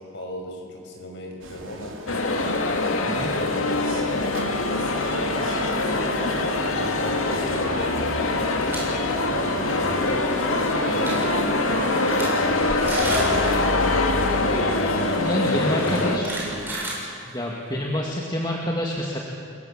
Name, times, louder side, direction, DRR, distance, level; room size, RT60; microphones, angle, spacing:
voice 1, 0.0-1.9 2.8-3.5 4.1-4.3 4.7-6.1 6.9-8.0 8.3-14.4 15.6-16.6, left 1 dB, 60° left, 1 dB, 5.6 m, -37 dB
sound 1, 1.4-16.7, right 1 dB, 75° right, 3.3 m, -35 dB
sound 2, 2.1-16.2, left 2 dB, 90° left, 2.3 m, -24 dB
sound 3, 8.6-8.8 9.2-9.4 10.6-10.7 10.9-11.3 11.8-12.3 12.6-12.7 12.9-13.3 14.5-14.6 15.7-17.6, right 2 dB, 10° right, 6.9 m, -32 dB
voice 2, 15.2-16.3 17.2-19.2, left 1 dB, 20° left, -1 dB, 2.1 m, -27 dB
29.0 x 22.5 x 7.4 m, 2.3 s
head